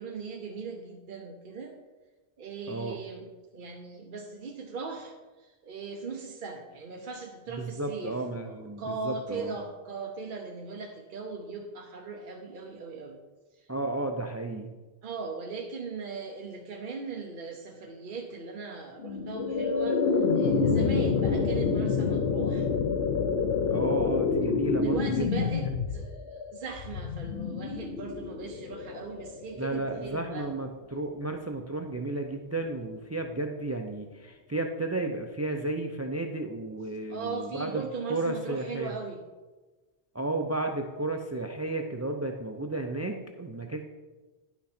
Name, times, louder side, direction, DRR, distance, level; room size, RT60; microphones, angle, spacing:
voice 1, 0.0-1.7 2.4-8.1 8.4-13.2 13.6-13.7 15.0-22.7 24.8-25.6 25.9-30.5 37.1-39.2, right 4 dB, 55° right, 1 dB, 0.9 m, -39 dB
voice 2, 2.7-3.0 7.6-9.5 13.7-14.7 23.7-25.7 29.5-37.8 38.1-38.9 40.1-43.8, right 2 dB, 25° right, 4 dB, 0.3 m, -33 dB
sound 1, 19.0-30.1, left 5 dB, 70° left, 0.9 m, -28 dB
10.5 x 6.0 x 4.3 m, 1.2 s
omnidirectional pair, 1.1 m